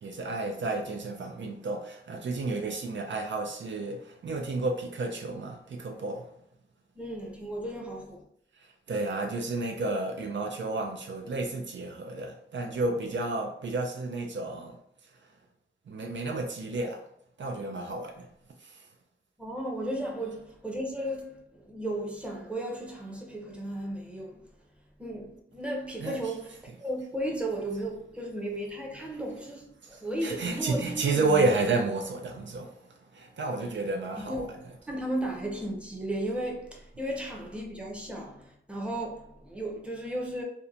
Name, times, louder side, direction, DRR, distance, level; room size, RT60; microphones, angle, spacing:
voice 1, 0.0-6.3 8.9-14.8 15.9-17.0 17.4-18.3 18.6-18.8 26.0-26.2 29.8-34.5, right 3 dB, 70° right, 0.4 m, -31 dB
voice 2, 6.9-8.3 19.4-24.5 25.0-31.5 34.2-34.5 34.9-40.4, right 1 dB, 5° right, 0.7 m, -35 dB
2.8 x 2.1 x 2.4 m
wide cardioid pair, 80°, 20 cm